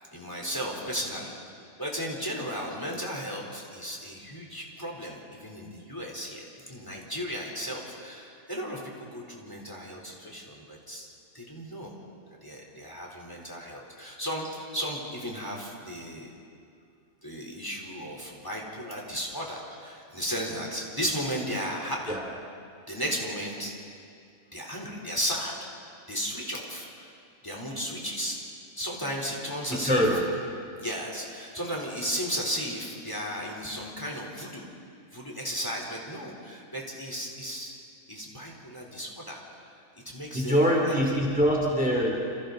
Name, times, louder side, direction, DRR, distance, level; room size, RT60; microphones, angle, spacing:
voice 1, 0.1-1.5 1.8-11.1 11.3-11.9 12.4-16.3 17.2-22.2 22.9-23.7 24.5-25.5 26.1-27.1 27.4-28.4 28.8-30.0 30.8-34.7 35.1-37.7 38.1-41.2, equal, 15° left, -2 dB, 3.6 m, -35 dB
voice 2, 29.7-30.2 40.3-42.2, equal, 5° right, -2 dB, 3.1 m, -24 dB
29.0 x 28.5 x 4.0 m, 2.4 s
omnidirectional pair, 1.5 m